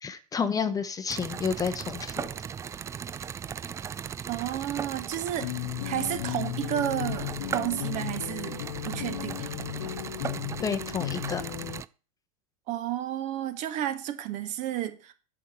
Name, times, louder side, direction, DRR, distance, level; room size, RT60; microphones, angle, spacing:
voice 1, 0.0-2.3 10.6-11.4, left 6 dB, 20° left, 0.9 m, -30 dB
sound 1, 1.1-11.9, right 7 dB, 15° right, 0.4 m, -38 dB
voice 2, 4.3-5.5 5.8-9.5 12.7-15.1, right 11 dB, 40° right, 1.3 m, -32 dB
sound 2, 5.4-11.8, left 15 dB, 55° left, 0.4 m, -35 dB
10.0 x 4.9 x 7.0 m
figure-of-eight pair, 85°, 19 cm